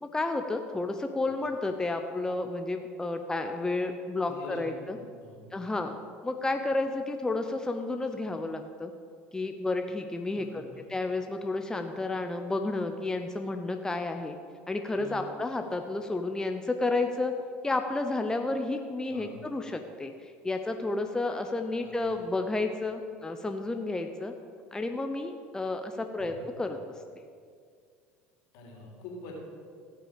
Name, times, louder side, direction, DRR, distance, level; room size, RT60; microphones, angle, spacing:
voice 1, 0.0-5.0 5.5-5.9 6.2-8.9 9.3-14.4 14.7-17.3 17.6-24.3 24.7-26.3 26.6-26.8, left 2 dB, 10° left, 5 dB, 0.7 m, -31 dB
voice 2, 4.3-5.6 10.3-10.8 14.9-15.2 15.6-15.7 19.0-19.3 21.8-22.2 26.2-26.5 28.5-29.3, left 3 dB, 70° left, -1 dB, 3.2 m, -46 dB
17.0 x 6.0 x 5.1 m, 2.2 s
hypercardioid pair, 80°, 6 cm